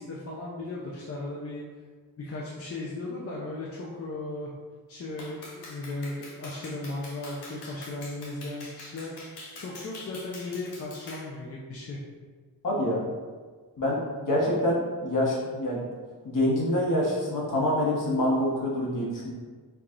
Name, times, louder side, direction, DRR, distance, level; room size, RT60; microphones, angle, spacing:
voice 1, 0.0-1.6 2.2-4.5 4.9-12.0, left 2 dB, 40° left, -5 dB, 0.5 m, -36 dB
Clapping, 5.2-11.3, left 2 dB, 85° left, 0.8 m, -45 dB
voice 2, 12.6-13.0 13.8-15.8 16.2-19.3, left 1 dB, 55° left, -4 dB, 1.1 m, -26 dB
4.7 x 2.4 x 2.5 m, 1.5 s
wide cardioid pair, 115°, 39 cm